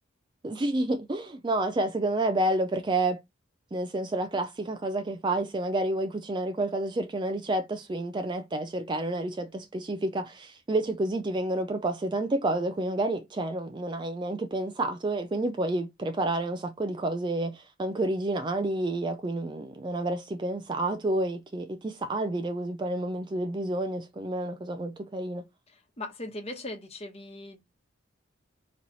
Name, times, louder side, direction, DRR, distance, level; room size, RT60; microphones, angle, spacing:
voice 1, 0.4-3.2 3.7-25.4, right 2 dB, 25° right, 0.4 m, -29 dB
voice 2, 25.7-27.6, left 2 dB, 30° left, 1.1 m, -39 dB
4.1 x 3.0 x 4.0 m
head